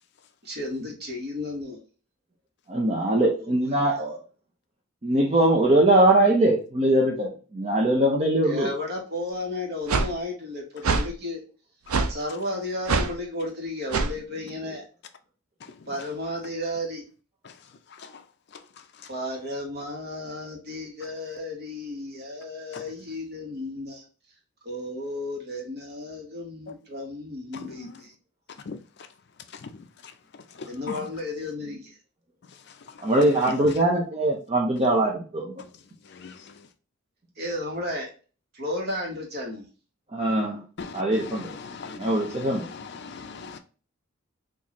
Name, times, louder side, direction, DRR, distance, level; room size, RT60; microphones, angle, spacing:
voice 1, 0.4-1.8 3.2-3.5 8.4-11.4 12.1-14.8 15.9-17.0 19.1-24.0 24.6-28.1 30.7-31.9 37.4-38.1 38.5-39.7, left 1 dB, 45° right, 1.2 m, -33 dB
voice 2, 2.7-4.2 5.0-8.7 33.0-35.5 40.1-40.6 40.9-41.5 42.0-42.7, right 1 dB, 30° right, 0.6 m, -22 dB
sound 1, 9.9-10.1 10.8-11.1 11.9-12.1 12.9-13.1 13.9-14.1, right 4 dB, 90° right, 0.5 m, -23 dB
voice 3, 41.7-42.1 43.0-43.6, left 4 dB, 50° left, 0.4 m, -39 dB
4.0 x 2.6 x 2.9 m
head